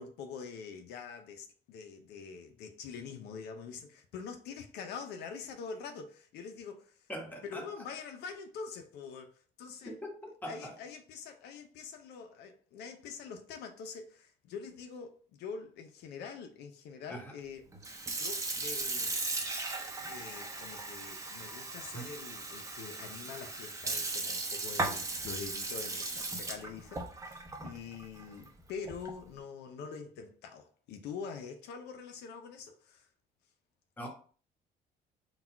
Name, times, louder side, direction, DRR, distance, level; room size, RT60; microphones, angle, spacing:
voice 1, 0.0-7.1 7.4-10.0 10.5-19.2 20.1-33.1, left 5 dB, 80° left, 0.6 m, -45 dB
voice 2, 7.1-7.7 9.8-10.7 17.1-17.2 21.9-22.1 34.0-34.1, equal, 10° left, 1.2 m, -42 dB
Sink (filling or washing) / Fill (with liquid), 17.7-29.3, right 3 dB, 20° right, 0.7 m, -37 dB
4.0 x 2.3 x 4.4 m
cardioid pair, 110°, 17 cm